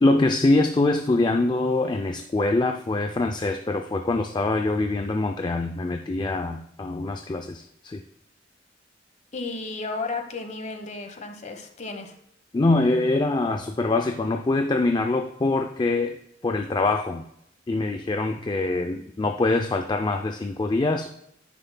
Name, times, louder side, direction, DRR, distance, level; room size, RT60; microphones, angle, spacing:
voice 1, 0.0-8.0 12.5-16.2 16.4-17.2 17.7-21.1, left 2 dB, 25° left, 5 dB, 0.4 m, -24 dB
voice 2, 9.3-12.1, left 3 dB, 40° left, 6 dB, 1.1 m, -33 dB
9.8 x 9.7 x 2.2 m, 0.77 s
head